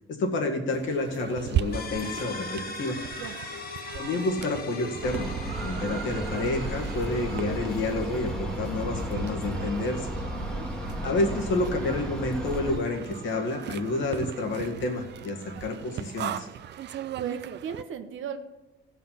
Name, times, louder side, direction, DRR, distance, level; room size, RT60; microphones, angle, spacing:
voice 1, 0.1-3.0 3.9-5.3 5.6-10.1 11.0-16.5, left 2 dB, 75° left, 1 dB, 1.9 m, -29 dB
sound 1, 0.7-17.8, right 11 dB, 60° right, 0.5 m, -38 dB
sound 2, 1.7-17.3, left 5 dB, 50° left, 1.1 m, -43 dB
sound 3, 5.0-12.8, right 1 dB, 5° left, 1.4 m, -34 dB
voice 2, 10.3-10.7 17.2-18.4, right 7 dB, 80° right, 7 dB, 1.1 m, -36 dB
15.0 x 5.5 x 5.8 m, 1.1 s
cardioid pair, 90°, 20 cm